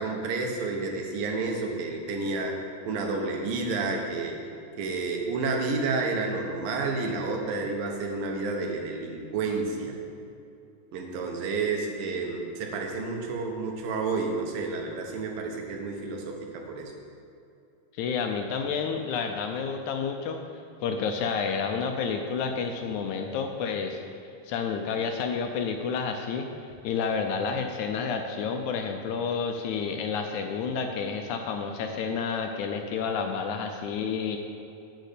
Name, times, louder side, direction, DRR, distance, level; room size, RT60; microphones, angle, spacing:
voice 1, 0.0-2.6 2.9-4.4 4.8-9.9 10.9-16.9, right 3 dB, 90° right, 2 dB, 3.0 m, -30 dB
voice 2, 17.9-20.4 20.8-24.0 24.4-34.4, left 5 dB, 75° left, 4 dB, 1.8 m, -30 dB
10.5 x 5.5 x 8.2 m, 2.7 s
omnidirectional pair, 3.9 m